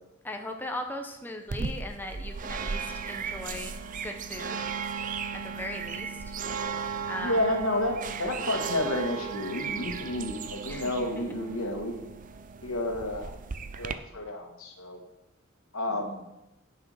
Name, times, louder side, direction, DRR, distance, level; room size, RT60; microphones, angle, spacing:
voice 1, 0.2-2.8 3.1-4.7 5.3-6.3 7.1-7.4 10.6-11.1 15.9-16.0, left 1 dB, 10° left, 3 dB, 0.8 m, -38 dB
sound 1, 1.5-13.9, right 5 dB, 40° right, 0.5 m, -36 dB
voice 2, 7.2-12.0 12.6-13.3 13.7-15.0 15.7-16.3, left 1 dB, 85° left, 3 dB, 1.7 m, -30 dB
10.5 x 5.9 x 5.5 m, 0.92 s
head